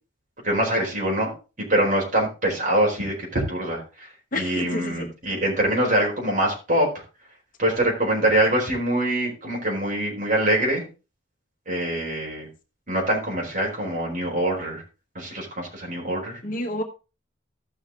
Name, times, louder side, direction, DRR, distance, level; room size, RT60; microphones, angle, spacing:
voice 1, 0.4-1.3 1.6-6.9 7.6-10.8 11.7-12.5 12.9-14.8 15.1-16.4, right 1 dB, 40° right, -2 dB, 4.6 m, -24 dB
voice 2, 4.3-5.1 16.4-16.8, left 1 dB, 45° left, 4 dB, 1.3 m, -29 dB
14.5 x 6.2 x 3.7 m, 0.32 s
head